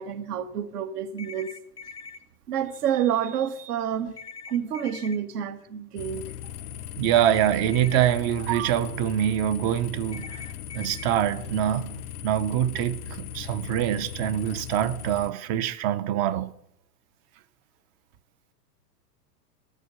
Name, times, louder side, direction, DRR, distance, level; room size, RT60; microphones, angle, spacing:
voice 1, 0.0-1.5 2.5-4.2 4.5-6.3, right 9 dB, 70° right, 1.3 m, -28 dB
sound 1, 1.2-2.2 4.2-5.2 7.1-8.1 10.1-11.1, left 5 dB, 10° left, 0.6 m, -42 dB
sound 2, 6.0-15.3, left 10 dB, 70° left, 0.6 m, -38 dB
voice 2, 7.0-10.4 10.7-16.5, right 11 dB, 35° right, 0.6 m, -25 dB
13.0 x 4.9 x 6.8 m
hypercardioid pair, 115°, 49 cm